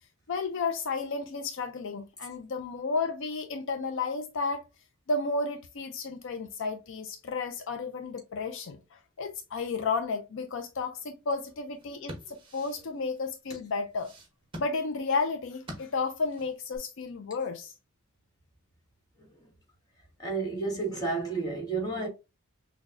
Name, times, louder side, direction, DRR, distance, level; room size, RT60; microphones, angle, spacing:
voice 1, 0.3-4.6 5.1-14.1 14.6-17.7, left 4 dB, 65° left, 0.5 m, -32 dB
sound 1, 11.7-16.8, equal, 25° right, 1.1 m, -47 dB
voice 2, 20.2-22.1, right 3 dB, 20° left, 1.4 m, -31 dB
6.0 x 2.2 x 2.5 m
head